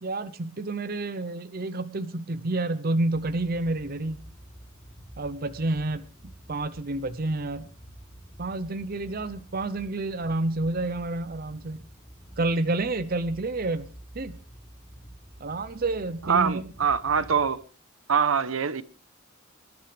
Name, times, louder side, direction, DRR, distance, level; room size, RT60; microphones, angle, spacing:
voice 1, 0.0-4.2 5.2-7.7 8.4-11.8 12.4-13.9 14.1-14.3 15.4-16.7, right 2 dB, 45° right, 0.7 m, -29 dB
sound 1, 3.1-17.5, right 1 dB, 15° left, 3.0 m, -48 dB
voice 2, 16.3-17.6 18.1-18.8, right 6 dB, 75° right, 0.9 m, -24 dB
25.0 x 11.5 x 3.4 m
head